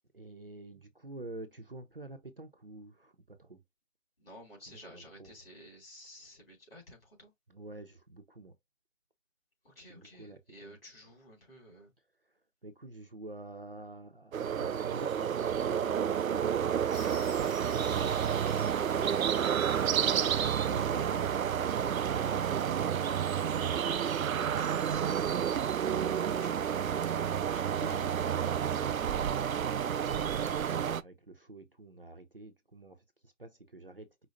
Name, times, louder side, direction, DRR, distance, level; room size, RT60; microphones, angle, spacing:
voice 1, 0.1-3.6 4.7-5.3 7.5-8.6 9.9-10.8 12.3-23.2 25.8-34.3, right 2 dB, 45° right, 0.6 m, -49 dB
voice 2, 4.2-7.3 9.6-11.9 24.4-25.4 26.2-28.1, equal, 45° left, 2.9 m, -53 dB
sound 1, 14.3-31.0, right 8 dB, 90° right, 0.5 m, -30 dB
sound 2, 16.9-22.5, left 3 dB, 70° left, 1.6 m, -53 dB
5.1 x 2.0 x 4.0 m
figure-of-eight pair, 170°, 40 cm